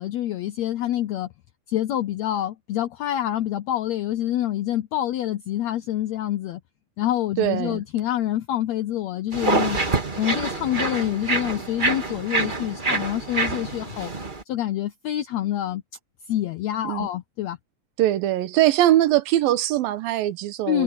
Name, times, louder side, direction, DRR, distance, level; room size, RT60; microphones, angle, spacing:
voice 1, 0.0-1.3 1.7-6.6 7.0-9.8 10.2-14.1 14.5-15.8 16.3-17.6 20.7-20.8, left 12 dB, 85° left, 1.5 m, -26 dB
voice 2, 7.4-7.8 16.8-17.1 18.0-20.8, right 14 dB, 85° right, 2.8 m, -21 dB
sound 1, 9.3-14.4, right 3 dB, 25° right, 1.2 m, -26 dB
omnidirectional pair, 4.0 m